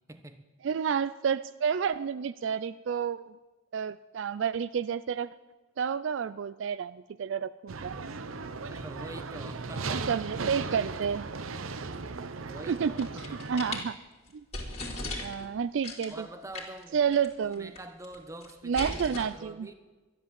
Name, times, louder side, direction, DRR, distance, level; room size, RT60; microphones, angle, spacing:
voice 1, 0.1-0.4 8.7-10.2 12.5-13.4 15.1-15.2 16.1-17.0 17.5-19.7, right 1 dB, 15° right, 8 dB, 1.0 m, -45 dB
voice 2, 0.6-3.2 3.7-5.3 5.8-8.0 10.1-11.3 12.7-13.1 13.5-14.0 14.3-14.4 15.2-16.1 16.9-17.7 18.6-19.7, right 7 dB, 65° right, 14 dB, 0.4 m, -30 dB
sound 1, 7.7-13.8, right 4 dB, 85° right, 0.7 m, -37 dB
sound 2, 12.8-13.9 14.3-14.4 14.5-15.5 15.8-16.2 16.5-16.8 17.1-17.3 17.5-18.1 18.4-19.2, left 2 dB, 30° left, 2.7 m, -37 dB
13.0 x 10.5 x 7.5 m, 1.2 s
head